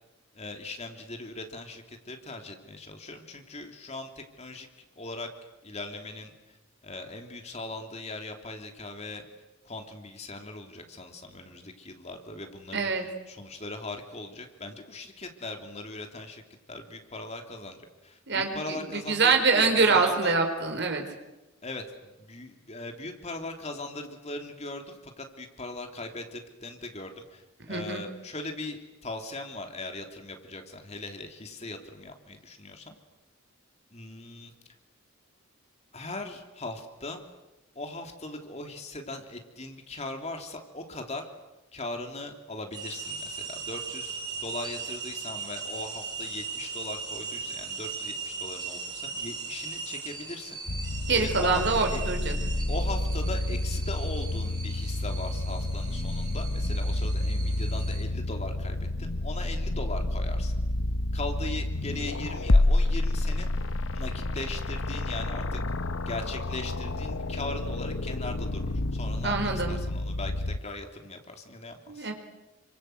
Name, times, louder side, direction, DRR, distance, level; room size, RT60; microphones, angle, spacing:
voice 1, 0.3-4.7 5.0-5.3 5.6-6.3 6.8-9.2 9.6-12.9 13.3-16.4 16.7-20.3 21.6-33.0 33.9-34.5 35.9-37.2 37.7-41.3 41.7-50.6 51.1-52.0 52.7-60.6 61.1-63.5 63.9-65.6 66.0-72.1, left 2 dB, 30° left, 4 dB, 3.1 m, -39 dB
voice 2, 12.7-13.0 18.3-21.0 27.7-28.0 51.1-52.4 69.2-69.8 71.9-72.1, right 4 dB, 55° right, 4 dB, 4.5 m, -25 dB
sound 1, 42.7-58.0, right 5 dB, 20° right, 4.8 m, -39 dB
sound 2, 50.7-70.6, left 2 dB, 70° left, 1.0 m, -29 dB
28.5 x 25.5 x 8.0 m, 1.0 s
head